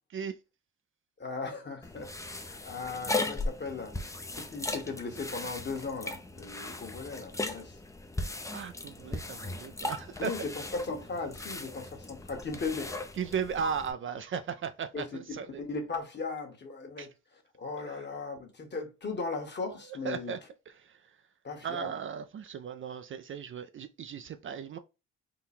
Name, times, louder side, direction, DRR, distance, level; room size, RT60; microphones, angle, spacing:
voice 1, 1.2-3.9 4.3-7.8 10.2-12.9 14.9-17.1 17.5-20.3 21.4-21.9, left 4 dB, 35° left, 1.2 m, -37 dB
sound 1, 1.8-13.9, left 2 dB, 10° left, 0.5 m, -38 dB
voice 2, 8.5-10.3 13.2-15.6 17.0-17.1 20.0-20.4 20.8-21.0 21.6-24.8, right 7 dB, 45° right, 0.4 m, -36 dB
3.8 x 2.2 x 4.2 m
cardioid pair, 90°, 30 cm